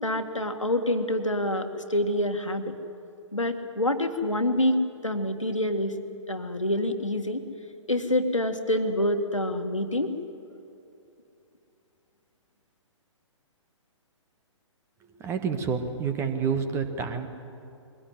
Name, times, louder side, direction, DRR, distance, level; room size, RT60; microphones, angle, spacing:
voice 1, 0.0-2.8 3.3-5.9 6.3-7.4 7.9-10.1, left 1 dB, 85° left, 6 dB, 2.0 m, -26 dB
voice 2, 15.2-17.3, right 6 dB, 15° right, 8 dB, 1.5 m, -28 dB
22.5 x 17.0 x 9.5 m, 2.7 s
figure-of-eight pair, 125°, 16 cm